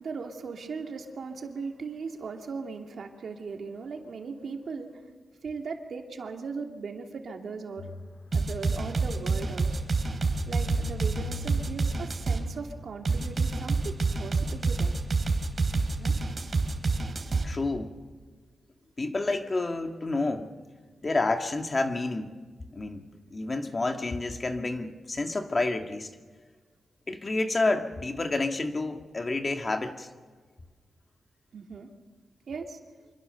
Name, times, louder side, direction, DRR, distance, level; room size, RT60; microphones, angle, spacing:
voice 1, 0.0-5.1 5.4-7.9 8.3-9.7 10.5-15.0 16.0-16.1 31.5-31.9 32.5-32.8, right 4 dB, 75° right, 3 dB, 2.7 m, -38 dB
sound 1, 7.8-14.4, left 3 dB, 75° left, 3.6 m, -44 dB
sound 2, 8.3-12.4 13.0-17.5, right 3 dB, 50° right, 3.2 m, -27 dB
voice 2, 17.4-17.9 19.0-20.5 21.0-22.3 22.7-26.1 27.1-30.1, left 2 dB, 35° left, 5 dB, 1.9 m, -29 dB
26.0 x 23.5 x 6.8 m, 1.5 s
cardioid pair, 85°, 0 cm